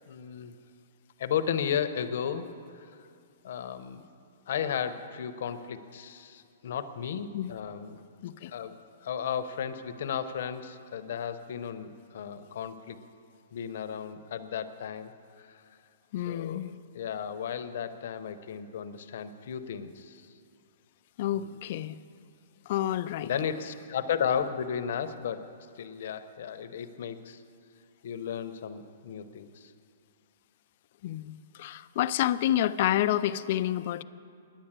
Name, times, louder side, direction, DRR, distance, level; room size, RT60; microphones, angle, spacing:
voice 1, 0.1-0.5 1.2-2.5 3.4-4.0 4.5-8.0 8.5-13.0 13.5-15.1 15.4-15.6 16.3-16.6 16.9-20.3 21.3-21.6 23.2-25.4 25.8-27.4 28.0-29.7, left 8 dB, 60° left, 10 dB, 0.7 m, -34 dB
voice 2, 16.1-16.8 21.2-22.0 22.7-23.3 31.0-34.0, left 12 dB, 45° left, 13 dB, 0.3 m, -29 dB
10.0 x 9.9 x 8.8 m, 2.4 s
hypercardioid pair, 160°, 0 cm